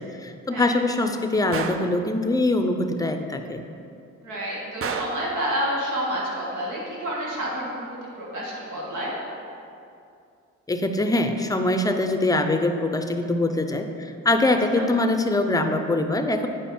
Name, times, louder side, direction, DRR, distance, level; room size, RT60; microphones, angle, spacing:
voice 1, 0.0-3.6 10.7-16.5, left 2 dB, 10° left, 6 dB, 0.6 m, -23 dB
Gunshot gunfire, 1.5-1.9 4.8-5.3, right 6 dB, 45° right, 0.5 m, -30 dB
voice 2, 4.2-7.9 8.2-9.1 14.7-14.8, equal, 80° right, -4 dB, 1.8 m, -29 dB
8.8 x 5.0 x 4.3 m, 2.5 s
cardioid pair, 90°, 30 cm